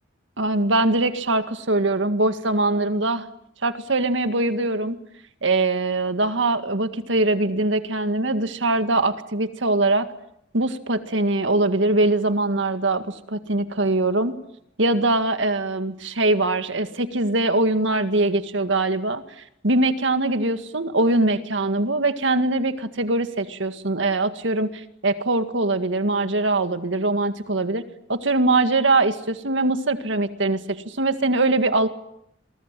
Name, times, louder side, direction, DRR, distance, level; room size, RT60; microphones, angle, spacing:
voice 1, 0.4-3.3 3.6-5.0 5.4-10.1 10.5-14.4 14.8-27.8 28.1-30.6 30.9-31.9, right 2 dB, 70° right, 9 dB, 1.9 m, -22 dB
28.5 x 23.0 x 7.6 m, 0.78 s
head